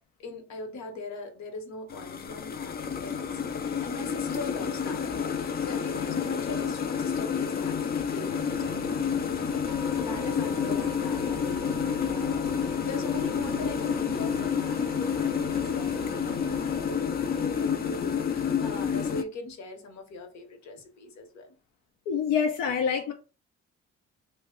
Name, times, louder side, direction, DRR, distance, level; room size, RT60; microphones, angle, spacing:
voice 1, 0.2-9.1 9.9-21.6, left 2 dB, 65° left, 0.9 m, -41 dB
sound 1, 1.9-19.2, left 7 dB, 35° left, 0.4 m, -29 dB
sound 2, 8.2-16.6, right 7 dB, 85° right, 0.5 m, -45 dB
sound 3, 9.7-17.5, left 4 dB, 5° right, 0.6 m, -44 dB
voice 2, 22.1-23.1, left 7 dB, 90° left, 0.6 m, -26 dB
2.9 x 2.1 x 3.5 m
cardioid pair, 90°, 30 cm